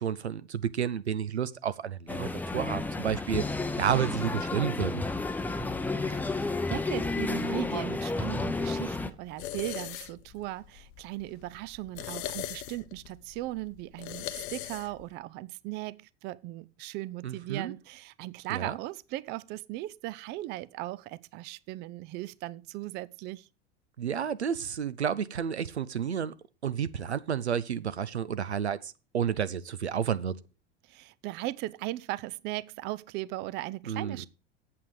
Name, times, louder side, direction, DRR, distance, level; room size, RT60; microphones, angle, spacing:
voice 1, 0.0-3.4 3.8-5.0 17.2-17.7 18.5-18.8 24.0-26.3 26.6-30.4 33.9-34.3, right 8 dB, 85° right, 0.6 m, -31 dB
sound 1, 2.1-9.1, left 3 dB, 5° left, 0.7 m, -31 dB
voice 2, 6.1-23.5 30.8-34.3, right 17 dB, 35° right, 0.4 m, -38 dB
sound 2, 7.5-15.1, left 13 dB, 50° left, 0.8 m, -42 dB
8.5 x 7.7 x 4.9 m
figure-of-eight pair, 80°, 32 cm